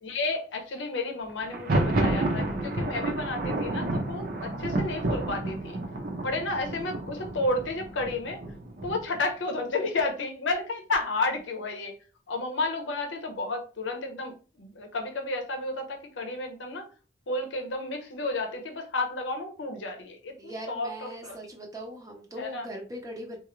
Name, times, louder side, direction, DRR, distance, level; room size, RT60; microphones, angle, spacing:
voice 1, 0.0-5.8 6.2-8.4 8.8-11.9 12.3-16.9 17.3-21.4 22.4-22.7, left 2 dB, 80° left, 4 dB, 0.7 m, -32 dB
Thunder, 1.4-9.2, right 2 dB, 50° right, 0.7 m, -30 dB
voice 2, 20.4-23.4, equal, 20° right, 1 dB, 0.6 m, -40 dB
3.9 x 2.4 x 3.0 m, 0.36 s
head